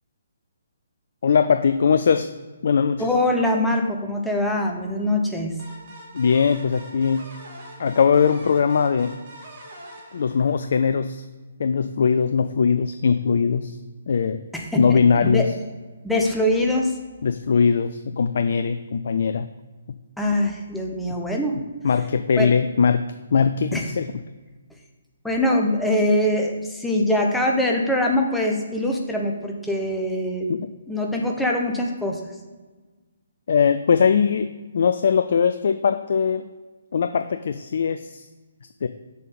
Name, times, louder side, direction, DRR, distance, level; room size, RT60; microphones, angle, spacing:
voice 1, 1.2-2.3 2.6-3.1 6.1-7.3 7.8-9.1 10.1-11.2 11.6-13.8 14.1-14.4 14.8-15.4 17.2-19.5 21.8-23.0 23.3-24.1 30.5-30.6 33.5-34.5 34.7-36.5 36.9-38.2 38.8-38.9, left 6 dB, 55° left, 9 dB, 0.3 m, -20 dB
voice 2, 3.0-5.6 14.5-15.5 16.0-16.9 20.2-21.5 22.4-22.5 23.7-23.8 25.2-30.5 30.9-32.2, left 1 dB, 5° left, 0 dB, 1.0 m, -23 dB
sound 1, 5.6-11.0, right 1 dB, 40° right, 2.0 m, -43 dB
7.1 x 5.5 x 4.2 m, 1.3 s
figure-of-eight pair, 135°, 0 cm